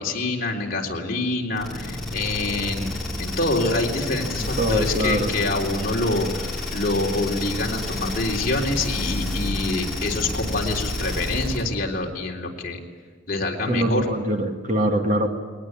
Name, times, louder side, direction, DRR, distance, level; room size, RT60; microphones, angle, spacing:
voice 1, 0.0-2.9 3.2-12.8 13.3-14.1, left 2 dB, 50° left, -1 dB, 3.7 m, -26 dB
sound 1, 1.6-11.7, left 1 dB, ahead, 7.1 m, -30 dB
voice 2, 4.4-5.3 13.7-15.3, right 1 dB, 40° right, 3 dB, 2.3 m, -23 dB
21.5 x 19.5 x 9.8 m, 1.5 s
head